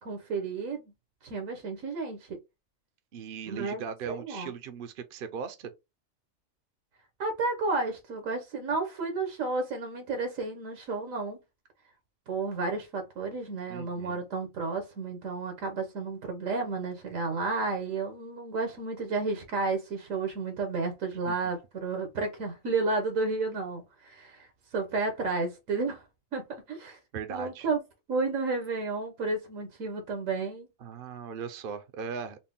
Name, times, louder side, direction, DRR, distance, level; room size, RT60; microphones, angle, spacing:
voice 1, 0.0-0.8 1.2-2.4 3.5-4.5 7.2-11.4 12.3-24.5 24.7-26.0 26.3-27.0 27.3-27.8 28.1-30.7, right 3 dB, 80° right, 1.3 m, -32 dB
voice 2, 3.1-5.7 13.7-14.2 21.3-21.4 27.1-27.7 30.8-32.4, right 6 dB, 55° right, 0.6 m, -38 dB
3.9 x 2.1 x 3.6 m
omnidirectional pair, 1.4 m